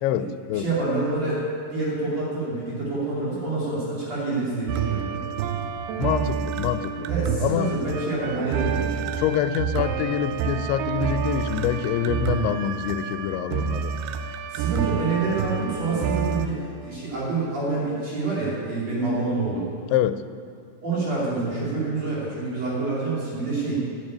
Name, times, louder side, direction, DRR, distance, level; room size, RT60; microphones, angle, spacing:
voice 1, 0.0-0.7 6.0-7.1 7.4-7.8 9.2-13.9 19.9-20.3, left 11 dB, 90° left, 2.6 m, -26 dB
voice 2, 0.5-5.2 7.1-9.1 14.5-19.7 20.8-23.8, right 3 dB, 45° right, 3.9 m, -27 dB
sound 1, 4.7-16.5, right 7 dB, 85° right, 2.6 m, -28 dB
9.8 x 9.8 x 8.8 m
omnidirectional pair, 4.5 m